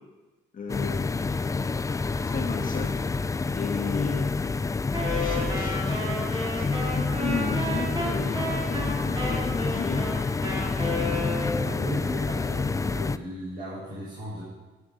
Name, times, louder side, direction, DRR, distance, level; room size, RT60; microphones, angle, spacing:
voice 1, 0.5-1.8 2.3-3.0 3.5-4.3 5.1-6.1 6.5-10.1 10.9-11.6 11.8-11.9, left 5 dB, 45° left, 1 dB, 1.4 m, -35 dB
sound 1, 0.7-13.2, left 4 dB, 15° left, 0.3 m, -28 dB
Wind instrument woodwind instrument, 4.9-11.9, equal, 25° right, 4.0 m, -32 dB
voice 2, 11.5-14.4, equal, 45° right, -11 dB, 3.9 m, -37 dB
11.5 x 10.0 x 3.9 m, 1.2 s
cardioid pair, 90°, 20 cm